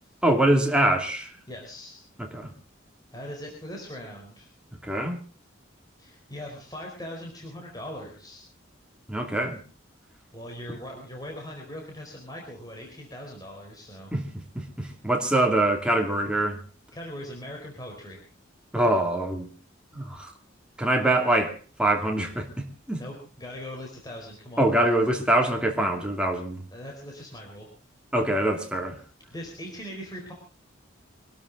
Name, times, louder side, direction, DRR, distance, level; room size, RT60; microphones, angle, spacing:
voice 1, 0.2-1.3 2.2-2.5 4.8-5.2 9.1-9.6 14.1-14.2 14.5-16.6 18.7-19.5 19.9-20.3 20.8-23.0 24.6-26.6 28.1-29.0, right 1 dB, 5° right, 2.8 m, -24 dB
voice 2, 1.5-2.0 3.1-4.5 6.0-8.4 10.3-14.1 16.9-18.2 23.0-24.7 26.7-27.7 29.3-30.3, equal, 20° left, 4.3 m, -40 dB
24.5 x 12.5 x 4.0 m
head